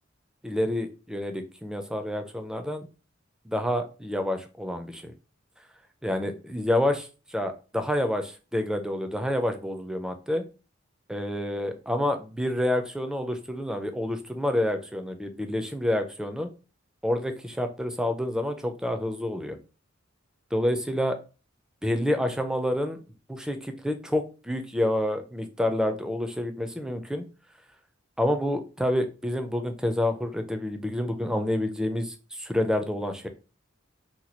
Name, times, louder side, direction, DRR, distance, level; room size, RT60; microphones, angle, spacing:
voice 1, 0.4-2.9 3.5-5.1 6.0-10.4 11.1-16.5 17.0-19.6 20.5-21.1 21.8-23.0 23.3-27.2 28.2-33.3, left 1 dB, 5° right, 7 dB, 0.4 m, -28 dB
2.9 x 2.2 x 4.1 m, 0.34 s
head